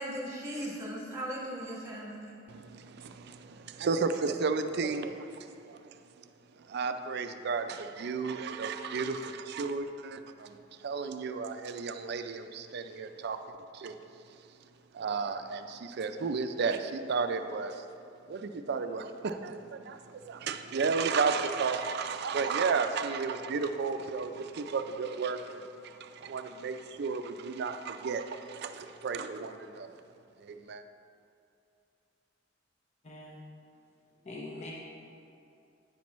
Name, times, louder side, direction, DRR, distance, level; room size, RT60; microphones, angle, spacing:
voice 1, 0.0-2.4, right 1 dB, 15° right, -3 dB, 1.3 m, -38 dB
voice 2, 2.5-6.2 6.6-13.4 13.7-14.0 14.9-17.9 18.3-29.9 30.4-30.8, right 5 dB, 60° right, 8 dB, 0.4 m, -33 dB
voice 3, 33.0-33.4 34.2-34.7, left 2 dB, 35° left, -3 dB, 0.6 m, -42 dB
9.3 x 5.9 x 3.1 m, 2.6 s
head